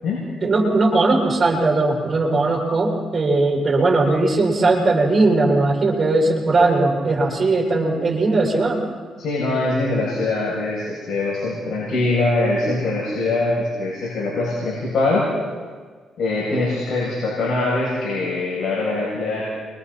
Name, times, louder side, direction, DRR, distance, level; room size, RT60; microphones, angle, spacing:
voice 1, 0.4-8.8, right 2 dB, 35° right, -2 dB, 6.5 m, -18 dB
voice 2, 9.2-15.3 16.2-19.4, left 2 dB, 60° left, -6 dB, 7.5 m, -22 dB
29.5 x 24.0 x 4.3 m, 1.5 s
cardioid pair, 90°, 0 cm